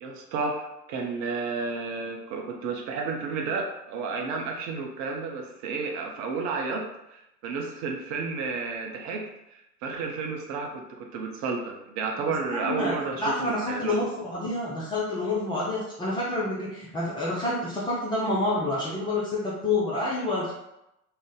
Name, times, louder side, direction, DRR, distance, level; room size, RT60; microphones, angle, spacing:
voice 1, 0.0-14.0, right 4 dB, 40° right, 1 dB, 0.6 m, -32 dB
voice 2, 12.5-12.9 13.2-20.5, left 2 dB, 10° left, -7 dB, 0.3 m, -28 dB
2.5 x 2.1 x 3.8 m, 0.86 s
figure-of-eight pair, 80°, 46 cm